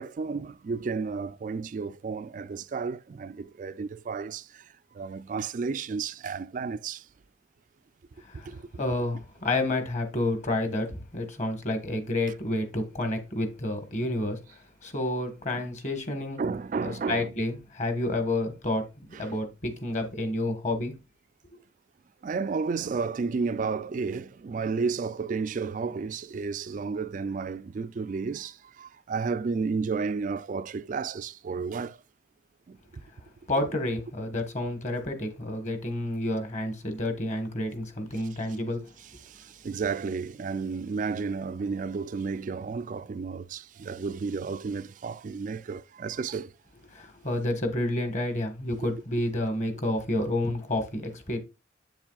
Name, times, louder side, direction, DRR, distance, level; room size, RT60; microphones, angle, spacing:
voice 1, 0.0-7.1 8.4-8.6 16.4-17.3 19.1-19.3 22.2-32.0 32.7-32.8 39.2-46.5, right 5 dB, 40° right, 0.3 m, -32 dB
voice 2, 8.2-16.4 16.8-20.9 33.5-38.8 46.9-51.4, left 1 dB, 40° left, 1.4 m, -30 dB
8.0 x 7.2 x 2.4 m
head